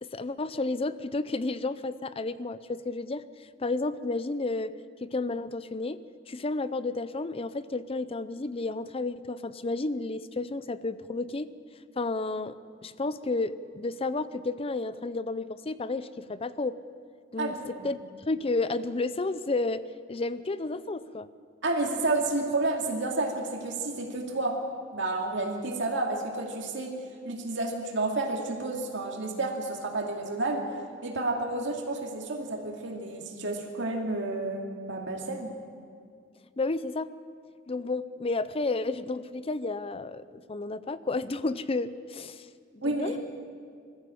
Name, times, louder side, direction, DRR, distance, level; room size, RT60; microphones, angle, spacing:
voice 1, 0.0-3.2 3.6-4.7 5.0-6.0 6.3-11.5 12.0-12.6 12.8-16.8 17.3-17.5 17.8-18.0 18.3-19.8 20.1-21.3 36.6-37.1 37.7-40.2 40.5-42.5 42.7-43.2, left 3 dB, 30° left, 15 dB, 0.5 m, -31 dB
voice 2, 17.4-17.9 21.6-24.6 24.9-26.9 27.2-30.7 31.0-35.5 42.8-43.2, right 2 dB, 65° right, 1 dB, 2.5 m, -30 dB
21.5 x 14.5 x 8.5 m, 2.2 s
head